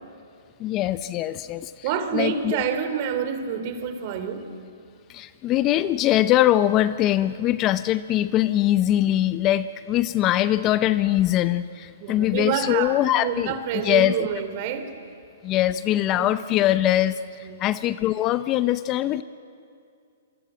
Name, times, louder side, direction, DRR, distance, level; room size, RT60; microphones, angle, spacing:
voice 1, 0.6-1.7 2.1-2.6 5.1-13.6 13.8-14.3 15.4-19.2, left 13 dB, 25° left, 14 dB, 0.6 m, -22 dB
voice 2, 1.8-4.5 12.0-14.9 16.1-16.3 17.4-17.6, right 7 dB, 40° right, 9 dB, 2.9 m, -28 dB
26.5 x 24.5 x 9.0 m, 2.3 s
hypercardioid pair, 145°, 0 cm